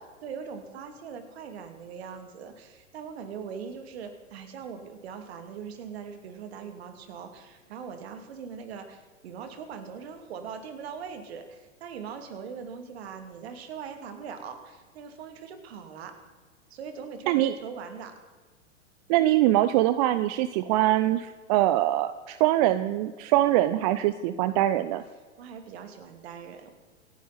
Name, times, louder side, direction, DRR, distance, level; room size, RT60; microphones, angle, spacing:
voice 1, 0.2-16.2 16.7-18.2 25.4-26.7, right 6 dB, 55° right, 7 dB, 2.7 m, -41 dB
voice 2, 19.1-25.0, right 14 dB, 30° right, 13 dB, 0.6 m, -23 dB
27.5 x 10.0 x 4.2 m, 1.4 s
figure-of-eight pair, 100°, 38 cm